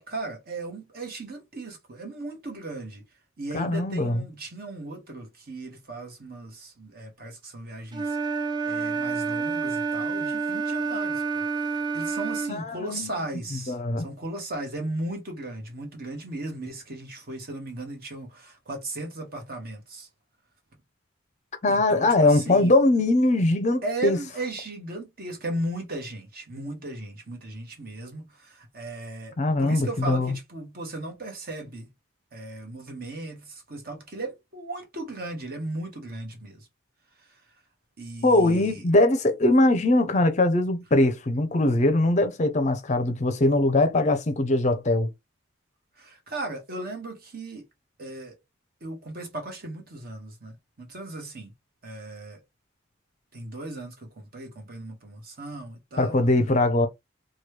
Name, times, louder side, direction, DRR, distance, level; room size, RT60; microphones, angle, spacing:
voice 1, 0.0-3.0 3.4-8.2 8.6-20.1 21.7-22.7 23.8-31.9 32.3-36.7 37.2-37.4 38.0-38.9 46.0-47.6 48.0-48.4 48.8-51.5 51.8-52.4 53.3-56.2, right 2 dB, 50° right, 1.1 m, -36 dB
voice 2, 3.5-4.2 12.5-13.1 13.7-14.1 21.6-24.2 29.4-30.3 38.2-45.1 56.0-56.9, left 2 dB, 35° left, 0.5 m, -21 dB
Wind instrument woodwind instrument, 7.9-12.6, right 4 dB, 20° right, 0.4 m, -28 dB
3.0 x 2.2 x 3.2 m
head